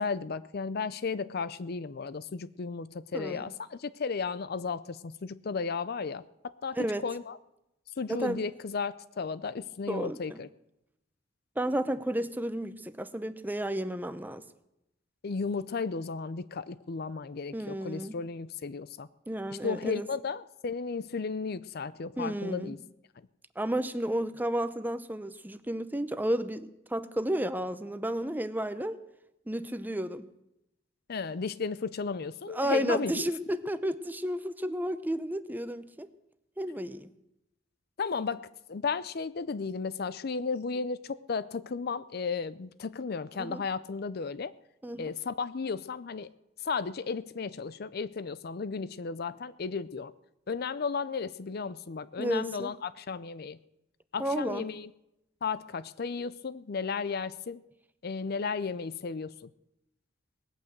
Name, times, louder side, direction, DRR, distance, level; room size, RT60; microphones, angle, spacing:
voice 1, 0.0-6.8 7.0-7.4 8.0-10.5 15.2-19.1 19.6-22.8 31.1-33.2 38.0-44.5 45.0-46.3 46.6-50.1 50.5-53.6 54.1-54.9 55.4-57.6 58.0-59.5, left 5 dB, 55° left, 16 dB, 0.5 m, -34 dB
voice 2, 3.1-3.4 6.8-7.0 8.1-8.5 9.9-10.4 11.6-14.4 17.5-18.2 19.3-20.1 22.2-22.7 23.6-29.0 29.5-30.3 32.5-36.1 36.6-37.1 43.4-43.6 44.8-45.1 52.2-52.7 54.2-54.6, right 1 dB, 10° right, 12 dB, 0.6 m, -32 dB
18.5 x 8.9 x 7.9 m, 0.86 s
head